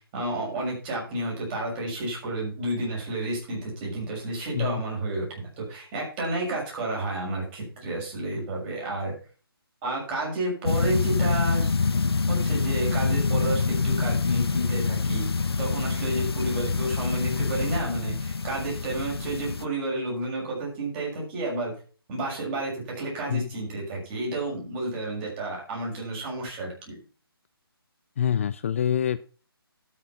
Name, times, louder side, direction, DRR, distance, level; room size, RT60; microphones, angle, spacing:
voice 1, 0.1-5.3 5.6-9.1 9.8-11.7 12.3-15.3 15.6-21.7 22.1-27.0, right 2 dB, 25° right, -2 dB, 6.7 m, -31 dB
sound 1, 10.7-19.7, left 4 dB, 80° left, 0.9 m, -26 dB
voice 2, 28.2-29.2, left 9 dB, 30° left, 15 dB, 0.4 m, -25 dB
12.5 x 6.8 x 5.9 m, 0.39 s
figure-of-eight pair, 150°, 13 cm